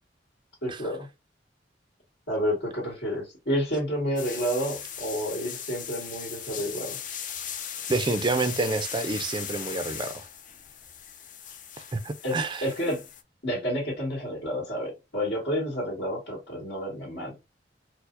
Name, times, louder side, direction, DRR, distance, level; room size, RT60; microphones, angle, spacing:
voice 1, 0.6-1.1 2.3-7.0 12.2-13.0 13.4-17.3, equal, 65° left, 1.8 m, -30 dB
sound 1, 4.2-13.2, left 8 dB, 45° left, 0.5 m, -38 dB
voice 2, 7.9-10.3 11.9-12.7, right 3 dB, 25° right, 0.4 m, -28 dB
4.5 x 2.1 x 2.5 m
head